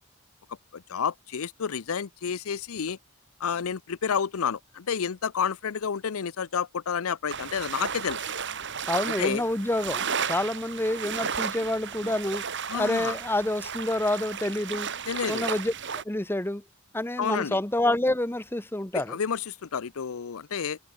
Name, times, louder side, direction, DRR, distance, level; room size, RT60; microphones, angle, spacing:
voice 1, 0.7-3.0 3.4-8.2 9.0-9.4 12.7-13.1 15.1-15.5 17.2-17.6 18.9-20.8, left 7 dB, 75° left, 0.6 m, -30 dB
sound 1, 7.3-16.0, right 7 dB, 55° right, 4.0 m, -34 dB
voice 2, 8.9-12.4 12.7-14.9 15.2-15.7 16.0-16.6 16.9-19.2, left 1 dB, 10° left, 1.0 m, -28 dB
head